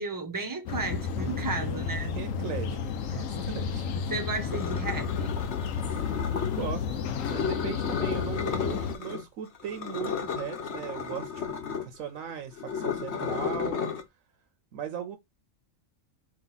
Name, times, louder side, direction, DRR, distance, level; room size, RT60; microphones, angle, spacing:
voice 1, 0.0-2.1 3.1-3.5 4.1-5.4, right 3 dB, 20° right, 0.5 m, -34 dB
sound 1, 0.7-9.0, left 6 dB, 80° left, 1.0 m, -32 dB
voice 2, 1.9-3.9 6.5-11.3 11.8-13.8 14.7-15.2, right 8 dB, 85° right, 1.1 m, -38 dB
sound 2, 4.5-6.7 7.2-9.2 9.5-14.0, left 6 dB, 60° left, 1.1 m, -33 dB
4.8 x 2.9 x 3.9 m
omnidirectional pair, 1.4 m